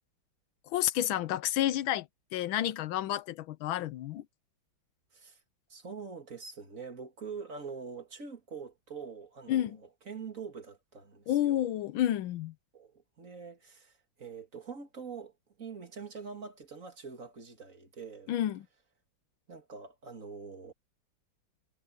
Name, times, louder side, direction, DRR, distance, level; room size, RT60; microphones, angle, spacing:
voice 1, 0.7-2.1 2.3-4.2 9.5-9.8 11.3-12.5 18.3-18.6, left 12 dB, 80° left, 1.5 m, -30 dB
voice 2, 5.7-11.6 12.7-15.3 15.6-18.3 19.5-20.7, right 5 dB, 40° right, 2.5 m, -44 dB
omnidirectional pair, 2.2 m